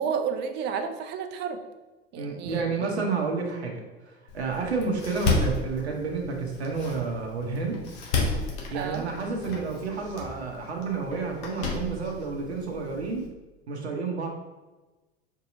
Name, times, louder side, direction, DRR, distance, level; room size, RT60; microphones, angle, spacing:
voice 1, 0.0-1.6 2.1-2.7 8.7-9.0, right 7 dB, 35° right, 7 dB, 0.4 m, -31 dB
voice 2, 2.2-7.8 8.7-13.2 13.7-14.3, right 4 dB, 80° right, 1 dB, 0.8 m, -30 dB
Door, 4.3-13.3, left 3 dB, 50° left, 1.0 m, -33 dB
4.6 x 2.7 x 2.6 m, 1.2 s
figure-of-eight pair, 80°, 32 cm